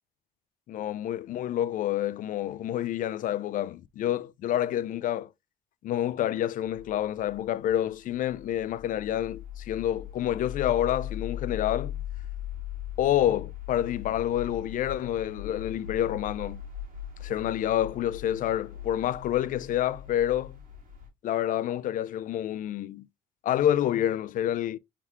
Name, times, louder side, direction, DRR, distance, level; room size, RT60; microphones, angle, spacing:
voice 1, 0.7-5.3 5.8-12.0 13.0-16.6 17.2-20.6 21.2-23.1 23.4-24.8, left 11 dB, 55° left, 0.4 m, -28 dB
sound 1, 6.6-21.1, left 10 dB, 55° right, 2.2 m, -40 dB
4.7 x 3.4 x 2.9 m
cardioid pair, 110°, 17 cm